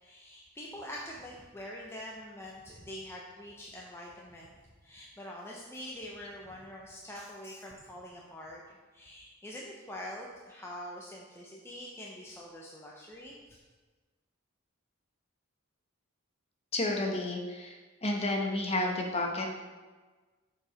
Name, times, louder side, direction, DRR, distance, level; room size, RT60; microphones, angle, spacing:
voice 1, 0.0-8.6 8.9-13.6, left 1 dB, 10° left, -3 dB, 0.7 m, -45 dB
voice 2, 16.7-17.8 18.0-19.5, left 2 dB, 30° left, 1 dB, 1.1 m, -31 dB
7.1 x 4.9 x 5.0 m, 1.3 s
head